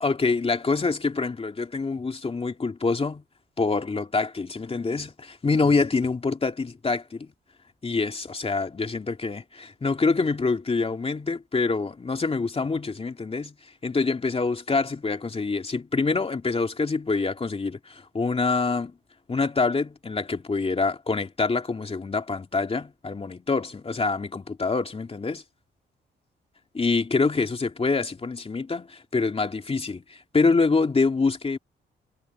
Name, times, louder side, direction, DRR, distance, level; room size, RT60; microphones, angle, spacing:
voice 1, 0.0-3.2 3.6-7.3 7.8-18.9 19.3-25.4 26.7-31.6, left 4 dB, 30° left, 2.6 m, -26 dB
cardioid pair, 85°, 19 cm